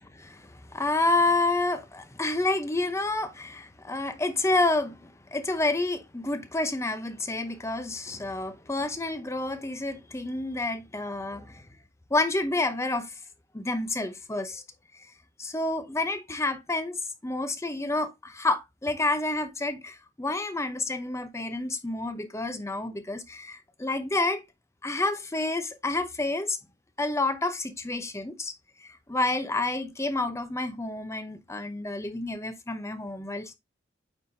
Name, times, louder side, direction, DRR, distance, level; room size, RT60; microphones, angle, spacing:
voice 1, 0.1-11.6 12.1-13.2 13.5-14.6 15.4-24.4 24.8-26.6 27.0-28.5 28.8-33.6, left 2 dB, 15° left, 0.7 m, -29 dB
8.8 x 4.4 x 2.7 m
head